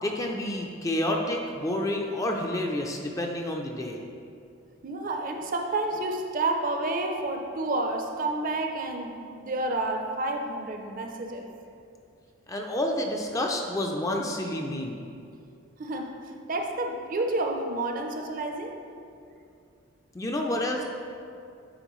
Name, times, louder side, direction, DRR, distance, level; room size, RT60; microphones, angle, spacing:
voice 1, 0.0-4.0 12.5-15.0 20.1-20.8, left 1 dB, 15° left, 1 dB, 0.4 m, -29 dB
voice 2, 4.8-11.5 15.8-16.2 16.5-18.8, right 2 dB, 40° right, 3 dB, 0.5 m, -30 dB
8.9 x 4.0 x 3.1 m, 2.5 s
head